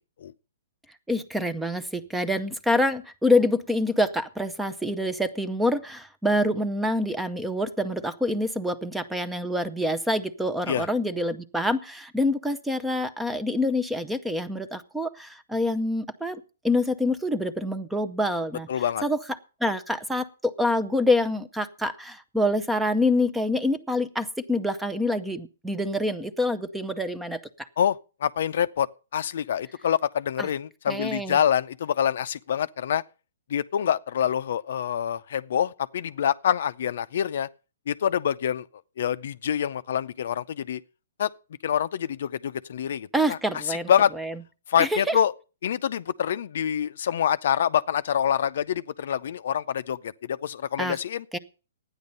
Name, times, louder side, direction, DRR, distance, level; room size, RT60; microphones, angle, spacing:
voice 1, 1.1-18.7 19.0-19.2 19.6-27.7 30.4-30.5 30.9-31.4 43.1-43.9 44.2-44.3 44.8-45.2 50.8-51.0 51.3-51.4, left 1 dB, 5° right, 0.6 m, -26 dB
voice 2, 18.7-19.0 27.8-28.9 29.1-33.0 33.5-37.5 37.9-38.6 39.0-40.8 41.2-41.3 41.6-44.1 44.7-45.3 45.6-51.2, left 9 dB, 60° left, 0.5 m, -26 dB
12.0 x 9.6 x 5.3 m
hypercardioid pair, 145°, 0 cm